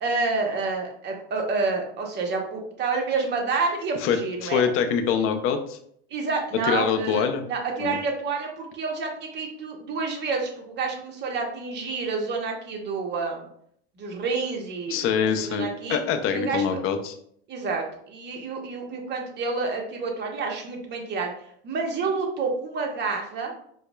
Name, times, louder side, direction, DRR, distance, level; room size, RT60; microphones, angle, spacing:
voice 1, 0.0-4.6 6.1-13.5 14.0-15.0 15.3-16.0 16.3-16.6 17.5-21.3 21.6-23.5, right 4 dB, 35° right, 1 dB, 0.9 m, -29 dB
voice 2, 3.9-5.8 6.6-7.4 7.8-8.0 14.9-17.1, left 7 dB, 45° left, 7 dB, 0.5 m, -25 dB
4.8 x 2.1 x 2.2 m, 0.67 s
supercardioid pair, 105°, 31 cm